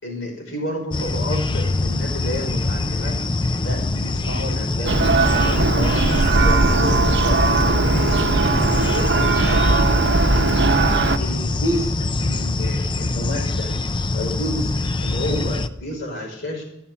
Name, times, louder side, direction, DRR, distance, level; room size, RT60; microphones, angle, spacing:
voice 1, 0.0-3.1 3.6-6.1 6.4-9.8 10.3-10.7 11.2-11.9 12.2-13.8 14.1-16.6, left 1 dB, 70° left, 0 dB, 5.5 m, -30 dB
sound 1, 0.9-15.7, left 2 dB, 25° left, 0.5 m, -24 dB
Church bell, 4.8-11.2, right 3 dB, 65° right, 0.9 m, -18 dB
15.0 x 7.4 x 6.9 m, 0.85 s
head